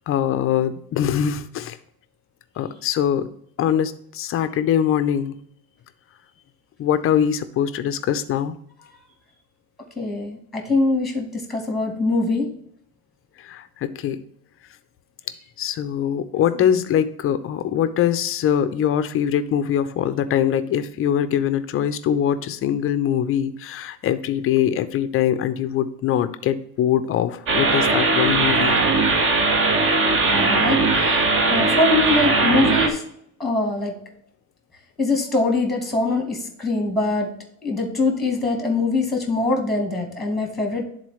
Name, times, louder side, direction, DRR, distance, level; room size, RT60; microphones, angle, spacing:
voice 1, 0.1-1.8 2.6-3.3 3.6-5.4 6.8-8.6 13.4-14.2 15.6-28.8, left 9 dB, 35° left, 11 dB, 0.5 m, -22 dB
voice 2, 10.0-12.5 30.2-31.2 31.5-33.0 33.4-33.9 35.0-37.3 37.6-40.8, left 2 dB, ahead, 3 dB, 1.3 m, -23 dB
sound 1, 27.5-32.9, right 3 dB, 30° right, 0.9 m, -19 dB
11.0 x 3.9 x 3.1 m, 0.68 s
cardioid pair, 135°, 40 cm